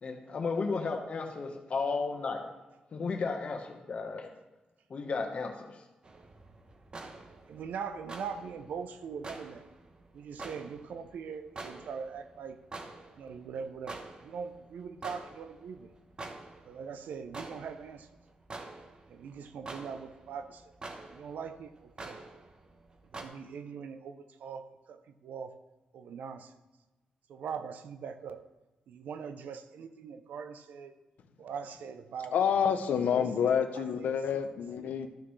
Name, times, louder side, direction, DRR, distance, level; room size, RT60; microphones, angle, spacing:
voice 1, 0.0-2.4 2.9-4.3 4.9-5.8, left 4 dB, 50° left, 4 dB, 1.2 m, -34 dB
sound 1, 6.0-23.2, right 3 dB, 35° right, 0.9 m, -47 dB
voice 2, 7.5-9.6 10.1-12.6 13.2-15.9 16.6-18.1 19.1-20.7 21.1-22.2 23.1-25.5 25.9-26.5 27.3-28.4 28.9-30.9 31.4-32.3 32.8-33.3 33.7-34.2 34.8-34.9, right 6 dB, 85° right, 10 dB, 0.6 m, -42 dB
voice 3, 32.3-35.1, left 7 dB, 85° left, 8 dB, 0.6 m, -28 dB
13.0 x 5.9 x 3.2 m, 1.1 s
cardioid pair, 110°, 3 cm